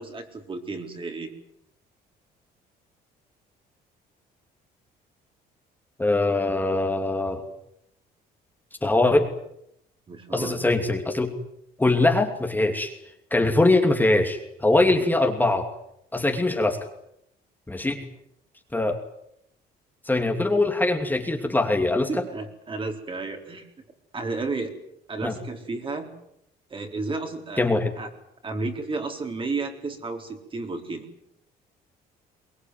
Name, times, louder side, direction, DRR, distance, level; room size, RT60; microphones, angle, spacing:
voice 1, 0.0-1.3 10.1-10.6 14.9-15.1 22.1-23.7 24.1-24.7 25.1-26.1 26.7-27.7 28.0-28.1 28.4-31.1, right 3 dB, 30° right, 4 dB, 4.3 m, -32 dB
voice 2, 6.0-7.4 8.8-9.3 10.3-11.3 11.8-12.9 13.3-15.7 16.1-16.8 17.7-18.0 18.7-19.0 20.0-22.2 25.2-25.3 27.6-27.9, left 2 dB, 10° left, 3 dB, 2.8 m, -22 dB
23.5 x 20.0 x 9.4 m, 0.77 s
cardioid pair, 110°, 17 cm